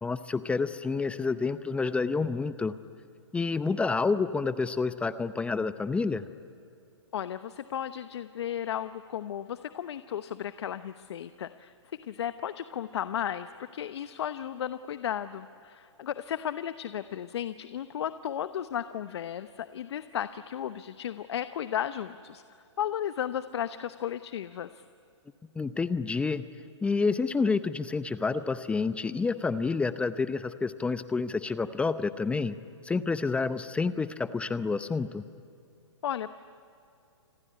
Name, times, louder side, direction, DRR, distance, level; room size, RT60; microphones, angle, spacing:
voice 1, 0.0-2.7 3.3-6.2 25.6-26.4 26.8-32.6 32.8-35.2, left 4 dB, 10° left, 13 dB, 0.7 m, -29 dB
voice 2, 7.1-11.7 12.0-22.4 22.8-24.8 36.0-36.3, left 10 dB, 65° left, 12 dB, 0.9 m, -34 dB
29.0 x 21.0 x 9.8 m, 2.7 s
hypercardioid pair, 135°, 15 cm